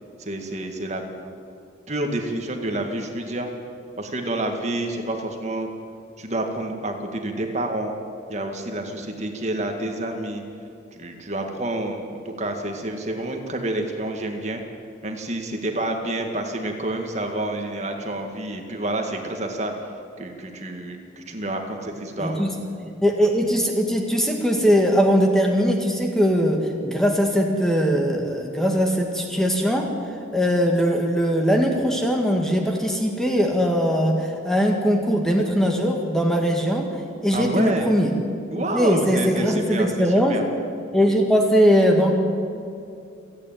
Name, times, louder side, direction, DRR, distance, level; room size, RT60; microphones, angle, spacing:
voice 1, 0.2-1.0 1.9-3.5 4.0-5.7 6.2-7.9 8.3-10.4 10.9-14.6 15.0-19.7 20.2-22.4 37.3-37.9 38.5-40.4, right 1 dB, 35° right, 3 dB, 2.0 m, -28 dB
voice 2, 22.2-22.5 22.8-29.9 30.3-38.1 38.7-40.4 40.9-42.1, equal, ahead, 1 dB, 1.8 m, -20 dB
29.0 x 9.8 x 9.2 m, 2.5 s
head